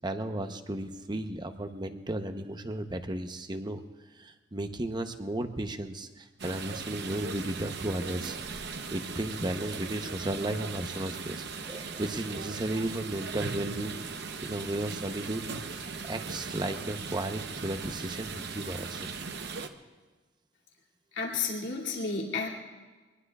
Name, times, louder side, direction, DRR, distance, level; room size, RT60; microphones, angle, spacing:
voice 1, 0.0-3.8 4.2-8.4 8.9-14.0 14.4-15.4 16.1-19.1, right 1 dB, 25° right, 7 dB, 0.8 m, -34 dB
sound 1, 6.4-19.7, right 4 dB, 65° right, 0.9 m, -38 dB
voice 2, 21.1-22.5, left 4 dB, 85° left, -3 dB, 2.6 m, -31 dB
24.0 x 20.0 x 2.4 m, 1.3 s
head